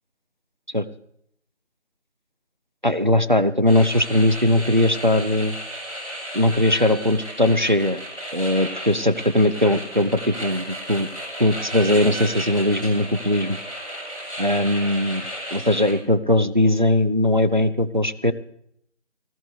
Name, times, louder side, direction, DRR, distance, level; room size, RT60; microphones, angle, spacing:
voice 1, 2.8-5.6 6.3-8.0 8.3-11.1 11.4-13.6 14.4-15.2 15.5-18.3, left 1 dB, 40° right, 13 dB, 0.6 m, -20 dB
sound 1, 3.7-15.9, equal, 15° left, 4.9 m, -34 dB
18.0 x 16.0 x 3.3 m, 0.72 s
figure-of-eight pair, 170°, 37 cm